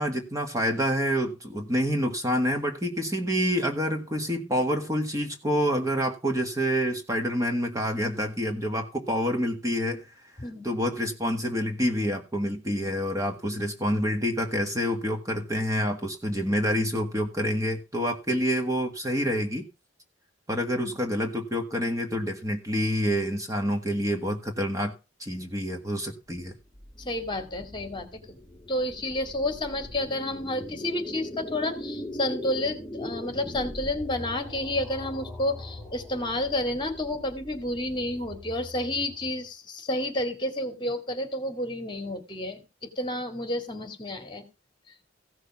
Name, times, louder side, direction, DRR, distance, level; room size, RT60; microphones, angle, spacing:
voice 1, 0.0-10.1 10.6-19.7 20.5-24.9 25.2-26.5, equal, 15° right, 1.7 m, -27 dB
sound 1, 26.3-39.5, left 1 dB, ahead, 3.1 m, -41 dB
voice 2, 27.0-28.4 28.7-42.6 43.0-44.5, left 1 dB, 25° left, 2.3 m, -30 dB
16.0 x 6.4 x 6.0 m
head